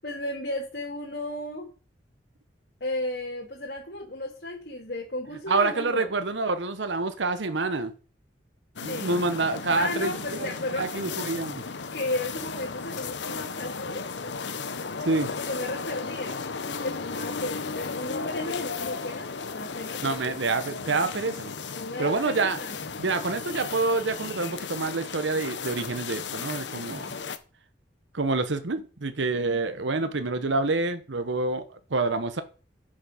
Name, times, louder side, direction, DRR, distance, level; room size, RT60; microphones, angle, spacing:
voice 1, 0.0-1.7 2.8-6.1 8.9-9.1 9.7-11.2 11.7-14.1 15.3-16.4 16.8-20.3 21.7-22.8, left 1 dB, 60° left, 2.2 m, -34 dB
voice 2, 5.5-7.9 8.8-10.5 10.8-11.6 15.0-15.3 20.0-21.5 22.0-22.6 23.0-27.1 28.1-31.6 31.9-32.4, right 3 dB, 90° right, 1.0 m, -27 dB
sound 1, 8.8-27.4, left 5 dB, 80° left, 0.9 m, -35 dB
9.7 x 6.4 x 6.4 m
head